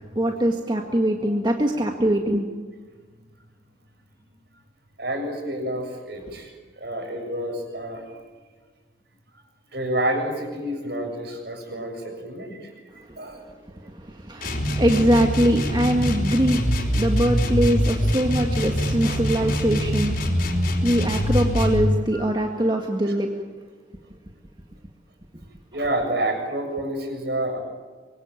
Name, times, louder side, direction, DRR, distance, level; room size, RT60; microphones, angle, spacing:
voice 1, 0.2-2.5 13.0-13.2 13.8-23.4, right 1 dB, 25° right, 2 dB, 1.8 m, -23 dB
voice 2, 5.0-8.2 9.7-13.5 13.8-13.9 22.1-22.3 23.1-23.2 25.7-27.6, right 1 dB, 60° right, 4 dB, 7.1 m, -29 dB
sound 1, 14.4-21.9, equal, 50° left, 5.0 m, -24 dB
25.5 x 23.5 x 9.2 m, 1.4 s
head